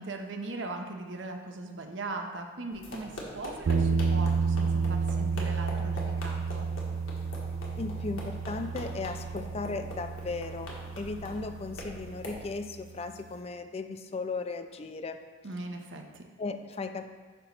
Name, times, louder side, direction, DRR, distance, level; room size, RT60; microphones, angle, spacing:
voice 1, 0.0-6.7 15.4-16.2, right 2 dB, 65° right, 4 dB, 0.8 m, -39 dB
sound 1, 2.7-12.4, left 1 dB, 85° left, 1.4 m, -44 dB
sound 2, 3.7-12.6, right 5 dB, 85° right, 0.4 m, -31 dB
voice 2, 7.8-15.2 16.4-17.1, left 3 dB, 30° left, 8 dB, 0.4 m, -36 dB
8.8 x 3.0 x 5.7 m, 1.4 s
head